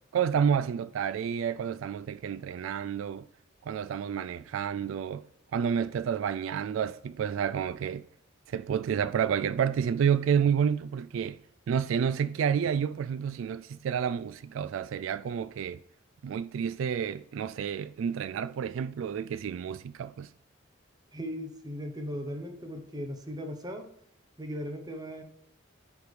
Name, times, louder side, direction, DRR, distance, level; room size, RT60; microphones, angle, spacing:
voice 1, 0.1-3.3 3.6-5.2 5.5-8.1 8.5-11.4 11.7-15.8 16.2-20.3, right 7 dB, 75° right, 0.3 m, -29 dB
voice 2, 21.1-23.9 24.4-25.2, equal, 20° right, 0.9 m, -37 dB
10.5 x 3.5 x 4.9 m
head